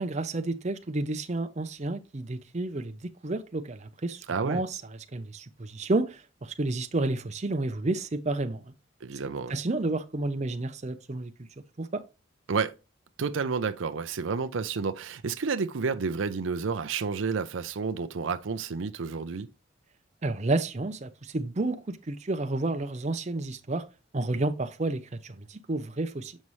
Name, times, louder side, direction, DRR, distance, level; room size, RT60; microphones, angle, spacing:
voice 1, 0.0-3.0 3.2-4.8 5.1-8.7 9.2-11.3 11.8-12.0 20.2-23.8 24.1-26.4, right 2 dB, 35° right, 0.6 m, -30 dB
voice 2, 4.3-4.6 9.0-9.5 12.5-12.7 13.2-19.5, right 5 dB, 80° right, 0.5 m, -30 dB
7.3 x 5.4 x 3.1 m
head